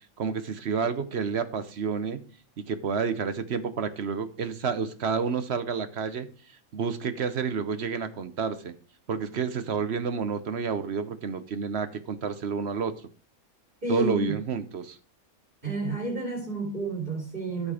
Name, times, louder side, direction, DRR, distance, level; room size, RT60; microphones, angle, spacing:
voice 1, 0.2-2.2 2.6-6.3 6.7-8.7 9.1-12.9 13.9-15.0, right 6 dB, 55° right, 1.0 m, -29 dB
voice 2, 13.8-14.4 15.6-17.7, right 3 dB, 35° right, 3.2 m, -30 dB
12.5 x 5.1 x 4.9 m
omnidirectional pair, 1.5 m